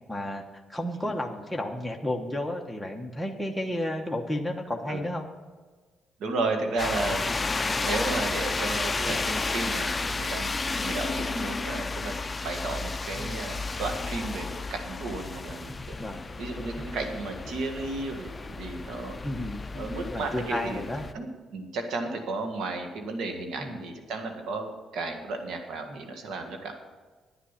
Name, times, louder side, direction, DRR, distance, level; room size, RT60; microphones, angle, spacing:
voice 1, 0.1-0.4 0.7-5.2 9.1-9.2 13.2-13.4 16.0-16.2 19.2-21.0 23.6-23.8 25.9-26.0, left 1 dB, ahead, 1 dB, 1.1 m, -32 dB
voice 2, 6.2-7.3 7.8-12.2 12.4-15.9 16.4-19.2 19.7-20.8 21.1-26.7, right 3 dB, 80° right, 4 dB, 1.8 m, -33 dB
sound 1, 6.8-21.1, left 3 dB, 25° left, 0.6 m, -32 dB
10.0 x 10.0 x 5.7 m, 1.3 s
cardioid pair, 90°, 0 cm